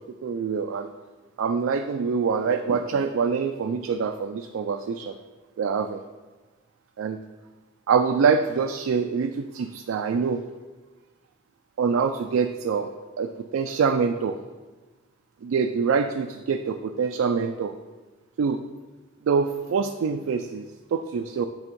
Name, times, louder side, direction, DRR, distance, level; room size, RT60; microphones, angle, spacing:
voice 1, 0.2-0.9 1.4-5.1 5.6-6.0 7.0-7.2 7.9-10.4 11.8-12.9 13.2-14.4 15.4-17.7 18.4-18.6 19.3-21.5, right 5 dB, 90° right, 7 dB, 0.3 m, -25 dB
8.2 x 3.5 x 5.3 m, 1.3 s
head